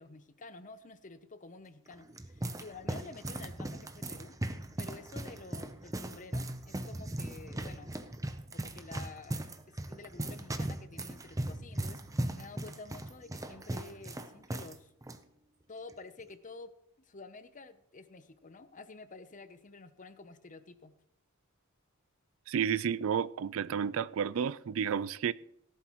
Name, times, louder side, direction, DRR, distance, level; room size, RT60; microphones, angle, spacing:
voice 1, 0.0-4.3 4.8-8.0 8.5-9.5 9.9-14.9 15.7-16.7 17.0-20.9, left 3 dB, 35° left, 0.7 m, -50 dB
sound 1, 1.9-14.8 15.0-15.2 15.9-16.2, right 1 dB, 15° right, 0.7 m, -38 dB
voice 2, 22.5-25.3, right 7 dB, 65° right, 0.4 m, -31 dB
17.5 x 11.5 x 3.1 m
head